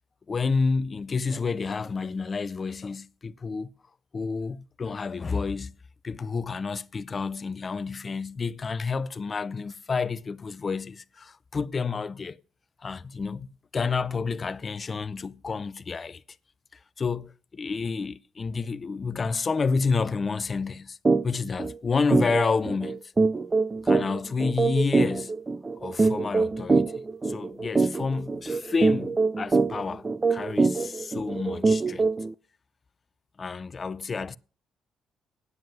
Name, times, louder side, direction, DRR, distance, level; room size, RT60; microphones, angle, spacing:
voice 1, 0.3-3.7 4.1-5.8 6.0-12.4 12.8-16.2 17.0-21.0 21.2-23.1 23.8-25.3 25.8-32.1 33.4-34.4, left 4 dB, 35° left, 0.5 m, -29 dB
sound 1, 21.0-21.2 21.6-21.7 22.1-32.3, right 3 dB, 25° right, 0.5 m, -24 dB
9.5 x 7.4 x 9.0 m
cardioid pair, 90°, 0 cm